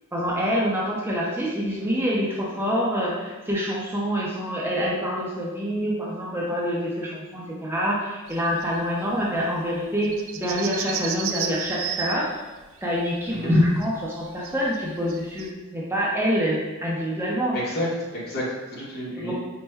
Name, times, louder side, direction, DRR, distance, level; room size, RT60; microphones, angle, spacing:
voice 1, 0.1-12.3 12.8-17.6 19.2-19.3, equal, 10° right, -5 dB, 0.5 m, -26 dB
sound 1, 8.3-8.8 9.1-9.2 9.3-9.4 9.7-15.5, right 8 dB, 65° right, 0.3 m, -33 dB
voice 2, 17.5-17.9 18.1-19.3, left 1 dB, 50° left, -6 dB, 1.1 m, -30 dB
4.3 x 2.1 x 3.3 m, 1.2 s
head